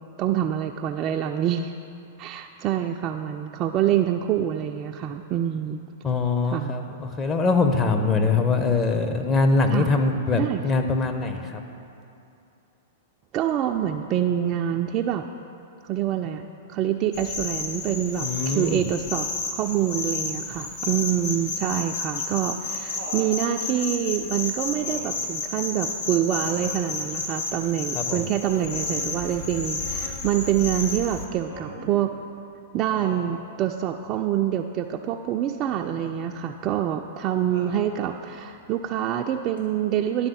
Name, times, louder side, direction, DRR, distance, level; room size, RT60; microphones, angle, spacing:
voice 1, 0.2-1.7 2.2-5.8 6.5-6.7 9.7-9.9 10.3-10.6 13.3-15.3 15.8-16.4 16.7-32.1 32.7-40.3, right 10 dB, 35° right, 4 dB, 0.3 m, -26 dB
voice 2, 6.0-11.6 18.2-18.8 27.9-28.3, left 3 dB, 25° left, 5 dB, 0.7 m, -23 dB
sound 1, 17.1-31.3, left 3 dB, 50° left, 1.1 m, -31 dB
Laughter, 22.0-23.3 24.7-25.2 26.4-26.8 28.4-29.0 31.5-32.0 32.9-33.3 35.6-36.1 37.5-38.2 39.6-39.7, right 1 dB, 85° left, 2.0 m, -41 dB
10.5 x 3.6 x 7.0 m, 2.6 s
hypercardioid pair, 105°, 0 cm